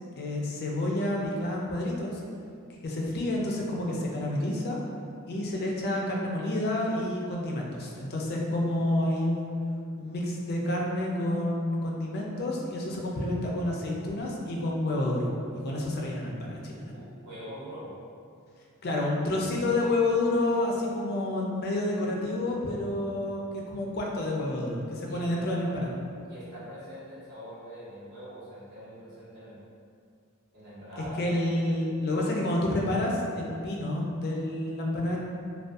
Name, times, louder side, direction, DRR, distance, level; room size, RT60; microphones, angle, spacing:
voice 1, 0.2-2.2 2.8-4.8 5.3-9.6 10.0-15.3 15.6-16.9 18.8-26.0 31.0-35.2, left 1 dB, 45° left, -2 dB, 0.4 m, -29 dB
voice 2, 16.8-17.9 25.1-25.5 26.2-29.6 30.5-31.4 32.1-32.5, equal, 50° right, -13 dB, 1.2 m, -44 dB
2.5 x 2.2 x 2.3 m, 2.3 s
head